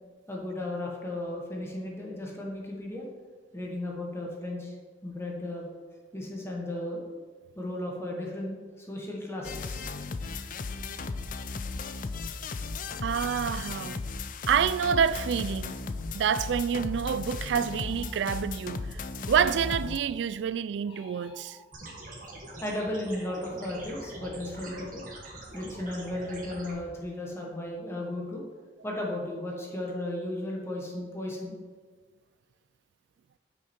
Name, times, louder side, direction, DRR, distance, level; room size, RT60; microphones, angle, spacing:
voice 1, 0.3-3.1 3.5-4.7 5.0-5.7 6.1-7.0 7.6-9.9 22.6-25.0 25.5-28.4 28.8-31.5, left 1 dB, 15° left, 1.2 m, -35 dB
sound 1, 9.4-20.0, left 3 dB, 45° left, 0.4 m, -36 dB
voice 2, 13.0-14.0 14.5-15.8 16.1-19.0 19.3-21.6, right 7 dB, 75° right, 0.3 m, -27 dB
sound 2, 17.6-18.7 19.2-20.3 20.8-22.0, left 2 dB, 30° left, 1.4 m, -54 dB
sound 3, 21.7-26.7, right 1 dB, 45° right, 1.5 m, -44 dB
8.6 x 6.3 x 4.4 m
head